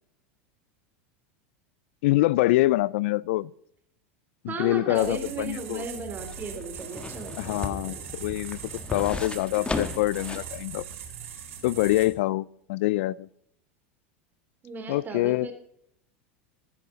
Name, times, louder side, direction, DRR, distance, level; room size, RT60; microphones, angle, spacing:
voice 1, 2.0-3.5 4.4-5.8 7.4-8.6 8.9-10.8 11.6-13.3 14.9-15.5, left 18 dB, 70° left, 24 dB, 0.3 m, -25 dB
voice 2, 4.4-8.1 14.6-15.5, right 4 dB, 25° right, 5 dB, 3.3 m, -36 dB
sound 1, 4.9-12.1, right 8 dB, 80° right, 2.7 m, -41 dB
sound 2, 5.5-10.5 10.9-11.0, left 3 dB, 15° left, 1.5 m, -36 dB
15.0 x 11.0 x 3.9 m, 0.72 s
hypercardioid pair, 105°, 7 cm